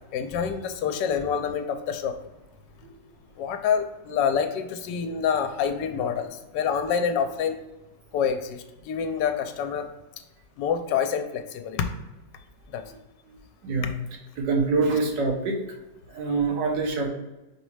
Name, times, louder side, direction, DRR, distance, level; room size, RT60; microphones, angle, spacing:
voice 1, 0.1-2.2 3.4-7.6 8.1-9.9 10.6-11.9 12.7-12.8, left 7 dB, 80° left, 6 dB, 1.2 m, -27 dB
voice 2, 14.5-15.6 16.2-17.1, right 3 dB, 85° right, 0 dB, 1.6 m, -24 dB
5.2 x 3.1 x 3.2 m, 1.0 s
omnidirectional pair, 1.9 m